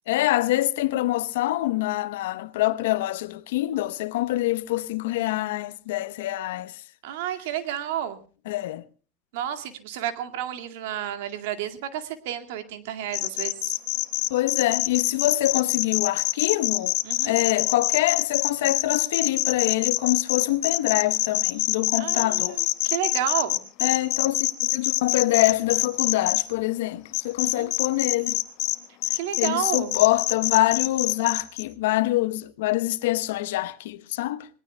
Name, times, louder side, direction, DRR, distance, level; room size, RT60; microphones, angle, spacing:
voice 1, 0.1-6.7 8.5-8.8 14.3-16.9 17.2-22.6 23.8-28.4 29.4-34.5, left 16 dB, 75° left, 0.9 m, -25 dB
voice 2, 7.0-8.2 9.3-13.8 17.0-17.4 22.0-23.6 27.4-27.7 29.1-30.0, right 10 dB, 70° right, 2.1 m, -31 dB
sound 1, 13.1-26.4 27.1-28.8 29.0-31.6, left 19 dB, 55° left, 1.2 m, -25 dB
25.5 x 19.0 x 2.2 m
supercardioid pair, 110°, 0 cm